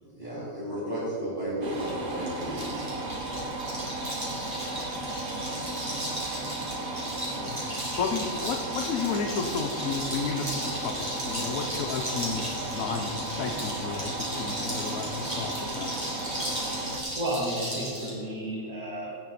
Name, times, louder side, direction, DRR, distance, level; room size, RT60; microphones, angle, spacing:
voice 1, 0.0-2.9, right 1 dB, 40° right, -11 dB, 2.9 m, -33 dB
sound 1, 1.6-17.0, right 2 dB, 55° right, 1.4 m, -35 dB
sound 2, 1.7-18.1, equal, 25° right, 2.9 m, -36 dB
voice 2, 7.3-15.9, left 5 dB, 85° left, 4 dB, 1.2 m, -33 dB
voice 3, 17.2-19.2, right 1 dB, 80° right, -6 dB, 2.3 m, -32 dB
16.5 x 6.7 x 4.2 m, 2.8 s
omnidirectional pair, 1.4 m